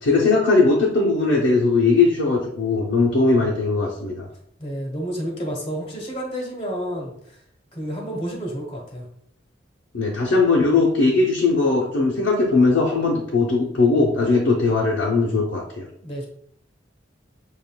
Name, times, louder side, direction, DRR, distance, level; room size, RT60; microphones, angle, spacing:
voice 1, 0.0-4.3 9.9-15.9, left 3 dB, 75° left, -3 dB, 0.7 m, -19 dB
voice 2, 4.6-7.1 7.7-9.1 16.0-16.3, equal, 30° left, -1 dB, 1.0 m, -30 dB
7.2 x 2.5 x 2.2 m, 0.72 s
head